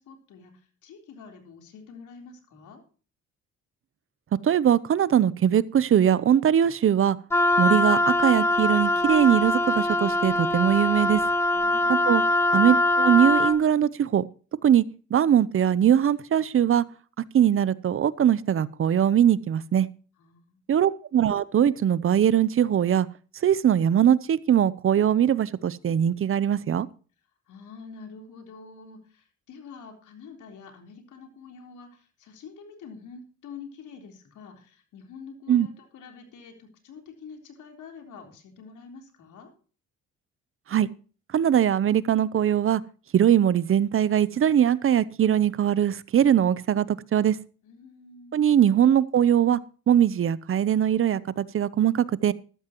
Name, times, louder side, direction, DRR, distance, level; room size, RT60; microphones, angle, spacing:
voice 1, 0.0-2.8 11.5-12.3 20.2-20.6 27.5-39.5 47.6-48.6, left 5 dB, 80° left, 3.9 m, -46 dB
voice 2, 4.4-7.2 7.6-11.2 11.9-12.2 12.5-14.2 14.6-14.8 15.1-16.8 17.3-19.9 20.7-23.1 23.4-26.9 35.5-35.7 40.7-40.9 41.3-42.8 43.1-47.4 48.3-49.6 49.9-52.3, right 9 dB, 45° right, 0.7 m, -21 dB
Wind instrument woodwind instrument, 7.3-13.6, left 2 dB, 10° left, 1.2 m, -23 dB
13.5 x 13.0 x 3.0 m
cardioid pair, 90°, 30 cm